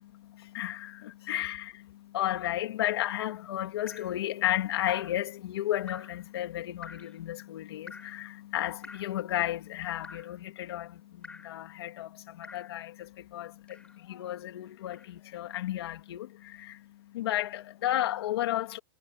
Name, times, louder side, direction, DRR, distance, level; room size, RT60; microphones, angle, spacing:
voice 1, 0.0-18.8, left 13 dB, 65° left, 2.8 m, -33 dB
Drip, 3.9-4.2 4.9-5.2 5.9-6.2 6.8-7.1 7.9-8.2 8.8-9.2 10.0-10.4 11.2-11.6 12.4-12.8 13.7-14.0 14.9-15.1, left 4 dB, 5° left, 5.5 m, -48 dB
supercardioid pair, 175°, 14 cm